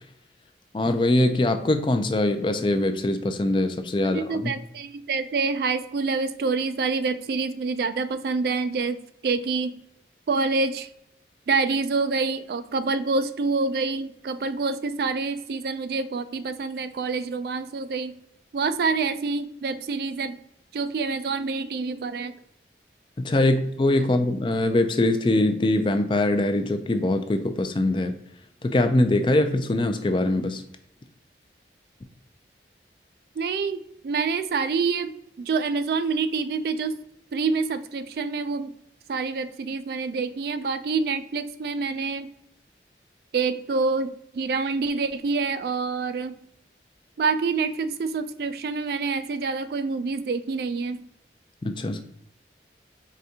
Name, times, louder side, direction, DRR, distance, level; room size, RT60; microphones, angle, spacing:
voice 1, 0.7-4.5 23.2-28.1 28.6-30.6 51.6-52.0, left 1 dB, 25° left, 7 dB, 0.4 m, -22 dB
voice 2, 4.0-9.7 10.3-10.9 11.5-18.2 18.5-20.4 20.7-22.3 33.4-35.1 35.4-37.0 37.3-38.7 39.1-42.3 43.3-46.4 47.2-51.0, right 4 dB, 60° right, 11 dB, 0.3 m, -27 dB
4.9 x 3.4 x 2.7 m, 0.75 s
head